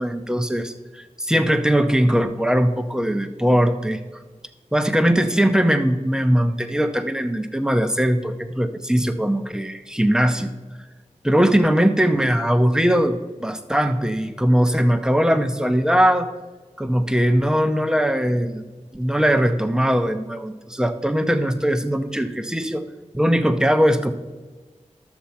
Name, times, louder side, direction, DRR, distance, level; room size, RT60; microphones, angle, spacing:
voice 1, 0.0-4.0 4.7-10.5 11.2-16.3 16.8-18.6 18.9-22.9 23.1-24.1, equal, 5° right, 8 dB, 0.8 m, -20 dB
12.0 x 7.1 x 4.4 m, 1.3 s
wide cardioid pair, 60°, 13 cm